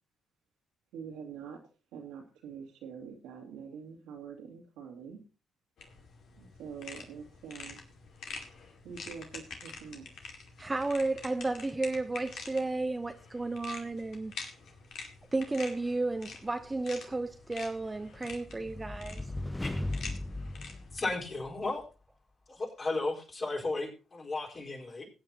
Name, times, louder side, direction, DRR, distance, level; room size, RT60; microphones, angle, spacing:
voice 1, 0.9-1.6 1.9-5.2 6.4-7.8 8.8-10.1, right 6 dB, 80° right, 2.2 m, -45 dB
sound 1, 5.8-21.1, left 4 dB, 65° left, 2.1 m, -47 dB
voice 2, 10.6-14.3 15.3-19.3, right 2 dB, 25° right, 0.8 m, -33 dB
sound 2, 17.8-21.7, left 2 dB, 15° left, 0.8 m, -38 dB
voice 3, 20.9-21.8 22.5-25.1, left 2 dB, 45° left, 4.4 m, -34 dB
20.0 x 8.6 x 2.9 m
hypercardioid pair, 45°, 0 cm